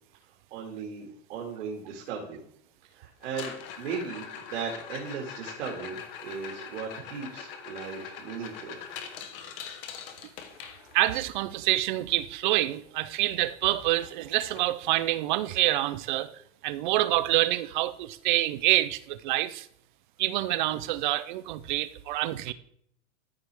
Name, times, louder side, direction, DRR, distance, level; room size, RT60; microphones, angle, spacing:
voice 1, 0.5-2.4 2.9-8.8, right 6 dB, 70° right, 2.1 m, -37 dB
sound 1, 3.2-11.2 13.5-13.6 13.8-14.1 14.6-14.7 15.2-15.3 17.2-17.3, left 7 dB, 50° left, 1.2 m, -42 dB
voice 2, 10.9-19.7 20.2-22.5, right 16 dB, 45° right, 0.5 m, -27 dB
13.5 x 4.7 x 3.4 m
supercardioid pair, 165°, 36 cm